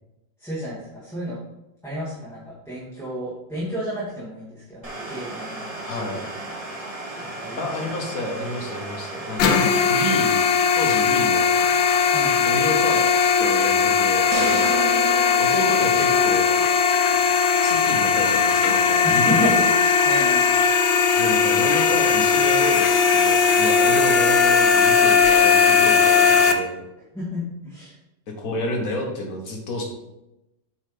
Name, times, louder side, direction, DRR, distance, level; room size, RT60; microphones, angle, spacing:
voice 1, 0.4-1.4 1.8-6.6 7.1-7.7 12.1-12.5 19.0-20.6 27.1-27.9, equal, ahead, -11 dB, 1.6 m, -32 dB
Domestic sounds home sounds, 4.8-14.3 14.5-14.6 15.2-15.6 15.9-16.3 16.6-18.7 19.1-19.2 19.9-20.0, right 2 dB, 25° right, 0.9 m, -38 dB
voice 2, 5.8-6.2 7.6-10.3 10.7-11.6 12.4-13.0 13.4-14.7 15.4-16.6 17.6-19.7 21.2-26.8 28.3-29.8, left 1 dB, 50° left, 1 dB, 1.3 m, -30 dB
sound 1, 9.4-26.5, left 6 dB, 75° left, 1.3 m, -18 dB
sound 2, 14.3-16.6, right 7 dB, 75° right, 0.9 m, -31 dB
7.9 x 4.3 x 3.3 m, 0.93 s
omnidirectional pair, 2.2 m